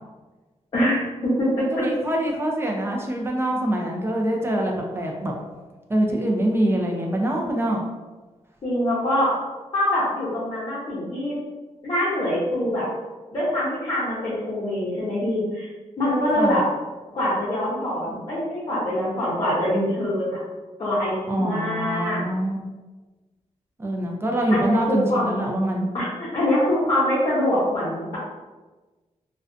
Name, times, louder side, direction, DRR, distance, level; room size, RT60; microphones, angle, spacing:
voice 1, 0.7-1.8 8.6-9.3 9.7-11.4 11.8-12.9 13.3-15.7 16.0-16.6 17.1-20.4 20.8-22.2 24.5-25.3 25.9-28.2, left 1 dB, 45° left, -9 dB, 0.6 m, -24 dB
voice 2, 1.6-5.3 5.9-7.8 16.4-16.6 21.3-22.6 23.8-25.9, right 1 dB, 20° right, 0 dB, 0.3 m, -24 dB
2.4 x 2.1 x 2.4 m, 1.2 s
wide cardioid pair, 165°, 12 cm